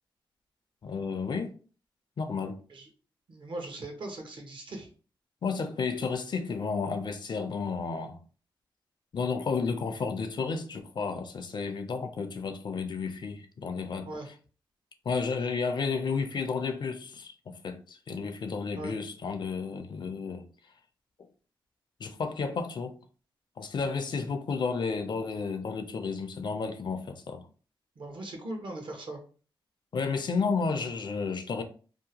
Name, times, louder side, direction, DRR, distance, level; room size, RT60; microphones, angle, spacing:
voice 1, 0.8-1.5 2.2-2.6 5.4-8.2 9.1-14.1 15.1-20.4 22.0-22.9 23.6-27.4 29.9-31.6, left 5 dB, 55° left, 0.4 m, -32 dB
voice 2, 3.3-4.9 14.0-14.3 18.8-18.9 28.0-29.2, right 2 dB, 65° right, 0.9 m, -39 dB
2.7 x 2.1 x 2.7 m
cardioid pair, 85°, 9 cm